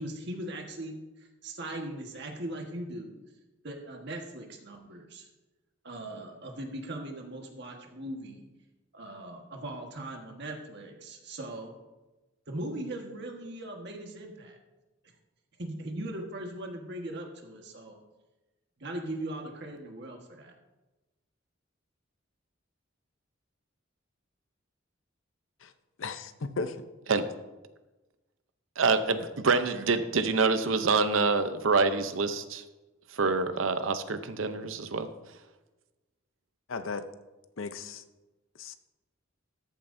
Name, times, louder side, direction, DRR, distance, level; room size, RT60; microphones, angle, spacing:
voice 1, 0.0-3.2 3.6-5.3 5.8-8.5 8.9-11.7 12.5-14.6 15.6-18.0 18.8-20.5, right 1 dB, 60° right, 2 dB, 1.5 m, -39 dB
voice 2, 26.0-26.8 36.7-37.1 37.6-38.0 38.6-38.7, left 4 dB, 90° left, 10 dB, 0.7 m, -35 dB
voice 3, 28.8-32.6 33.2-35.1, right 4 dB, 85° right, 10 dB, 0.7 m, -26 dB
13.5 x 8.8 x 2.7 m, 1.1 s
head